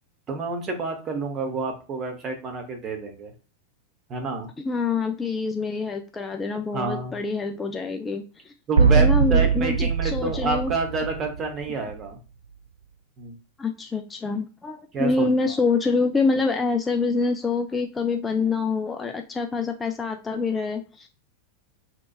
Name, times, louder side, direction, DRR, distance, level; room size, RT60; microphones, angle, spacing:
voice 1, 0.3-3.3 4.1-4.5 6.7-7.2 8.7-12.2 13.2-13.3 14.9-15.3, right 4 dB, 30° right, 3 dB, 0.8 m, -29 dB
voice 2, 4.7-8.5 8.8-10.7 13.6-21.1, left 4 dB, 15° left, 5 dB, 0.3 m, -26 dB
sound 1, 8.8-11.6, right 6 dB, 70° right, 0.3 m, -21 dB
2.8 x 2.2 x 2.2 m, 0.34 s
figure-of-eight pair, 90°, 0 cm